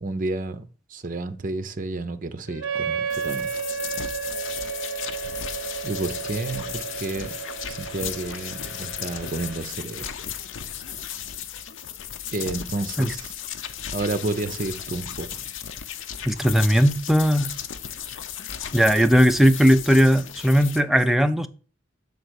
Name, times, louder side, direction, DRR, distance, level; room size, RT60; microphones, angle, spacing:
voice 1, 0.0-3.5 5.8-7.4 7.7-10.1 12.3-13.3 13.9-15.4, right 2 dB, 45° right, 0.6 m, -31 dB
sound 1, 2.5-9.6, right 2 dB, 70° left, 2.4 m, -41 dB
Wind instrument woodwind instrument, 2.6-8.2, right 6 dB, 90° right, 0.5 m, -32 dB
sound 2, 3.1-20.8, left 8 dB, 85° left, 0.7 m, -35 dB
voice 2, 16.2-17.5 18.7-21.5, equal, ahead, 0.4 m, -18 dB
6.8 x 3.9 x 6.3 m
head